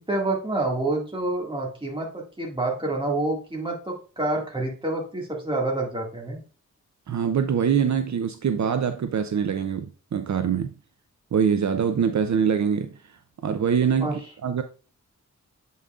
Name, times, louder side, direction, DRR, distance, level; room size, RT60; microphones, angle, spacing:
voice 1, 0.0-6.4 14.0-14.2, right 2 dB, 15° right, 1.9 m, -28 dB
voice 2, 7.1-10.7 11.3-13.0 13.4-14.6, right 7 dB, 65° right, 0.5 m, -24 dB
8.0 x 5.5 x 2.4 m
wide cardioid pair, 110°, 31 cm